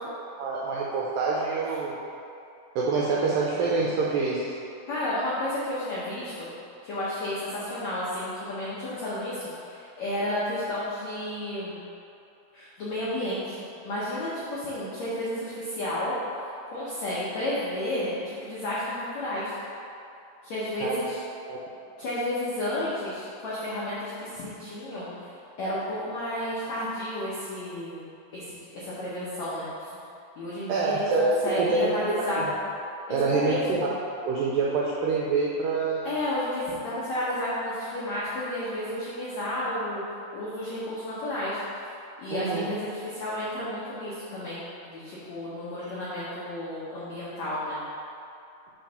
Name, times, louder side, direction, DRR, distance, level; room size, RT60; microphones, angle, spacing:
voice 1, 0.3-2.0 2.8-4.5 20.8-21.2 21.5-21.6 30.7-31.3 31.6-31.9 32.4-32.5 33.1-33.9 34.3-36.1 42.3-42.7, right 4 dB, 85° right, -5 dB, 2.0 m, -26 dB
voice 2, 4.9-6.5 6.8-11.8 12.5-19.5 20.4-21.2 22.0-25.3 25.6-29.9 30.4-32.5 33.1-33.6 36.0-40.0 40.3-41.6 42.2-47.8, left 1 dB, 80° left, -9 dB, 1.5 m, -32 dB
8.4 x 3.2 x 5.7 m, 2.7 s
omnidirectional pair, 4.8 m